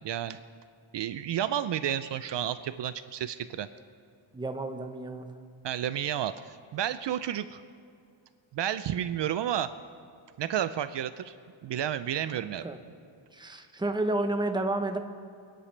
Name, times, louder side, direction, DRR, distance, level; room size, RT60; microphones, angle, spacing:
voice 1, 0.0-0.4 0.9-3.7 5.6-7.6 8.5-9.7 10.4-11.4 11.6-12.7, right 10 dB, 65° right, 13 dB, 0.5 m, -31 dB
voice 2, 4.3-5.3 12.4-12.8 13.3-15.0, right 2 dB, 10° right, 6 dB, 0.8 m, -31 dB
28.0 x 10.0 x 3.3 m, 2.3 s
wide cardioid pair, 140°, 48 cm